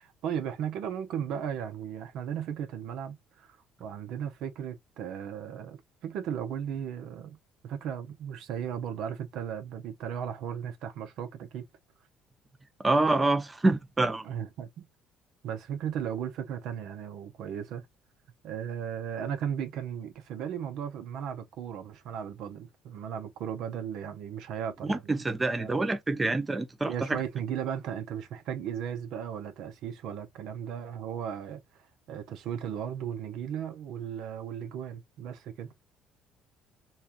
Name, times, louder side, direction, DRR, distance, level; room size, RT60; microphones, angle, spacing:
voice 1, 0.0-7.4 7.6-11.7 14.2-14.9 15.4-17.8 18.4-25.3 25.6-25.8 26.8-31.6 32.1-35.7, right 8 dB, 75° right, 0.8 m, -36 dB
voice 2, 12.8-14.2 24.8-27.2, right 2 dB, 20° right, 0.6 m, -26 dB
4.2 x 2.4 x 2.6 m
supercardioid pair, 90°, 0 cm